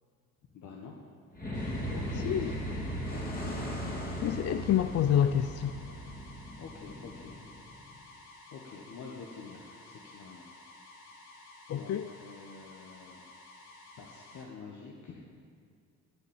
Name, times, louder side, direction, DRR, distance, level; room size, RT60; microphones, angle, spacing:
voice 1, 0.5-1.0 1.7-3.7 6.6-7.4 8.5-10.4 11.7-13.2 14.0-15.2, left 5 dB, 70° left, -2 dB, 1.5 m, -47 dB
sound 1, 1.3-7.9, equal, 30° left, 2.8 m, -37 dB
sound 2, 1.5-14.4, left 2 dB, 90° left, 2.0 m, -53 dB
voice 2, 4.2-5.8 11.7-12.1, left 10 dB, 55° left, 11 dB, 0.5 m, -27 dB
11.0 x 7.1 x 9.0 m, 2.2 s
cardioid pair, 90°, 30 cm